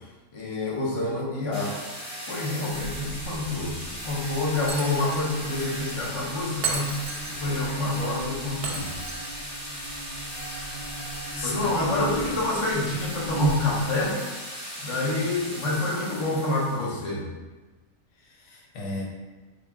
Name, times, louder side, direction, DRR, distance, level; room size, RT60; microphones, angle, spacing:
voice 1, 0.3-1.7 2.3-8.9 11.4-14.2 14.8-17.3, left 2 dB, 35° left, -5 dB, 0.6 m, -28 dB
sound 1, 1.5-17.0, equal, 70° left, 1.6 m, -37 dB
Buzz, 2.7-14.1, right 2 dB, 85° right, 0.4 m, -37 dB
Shatter, 4.7-5.3 5.6-5.7 6.6-7.6 8.6-9.6, right 5 dB, 60° right, 0.7 m, -33 dB
voice 2, 11.3-11.9 18.2-19.0, left 2 dB, 90° left, -2 dB, 1.1 m, -35 dB
3.8 x 2.2 x 3.4 m, 1.2 s
omnidirectional pair, 1.4 m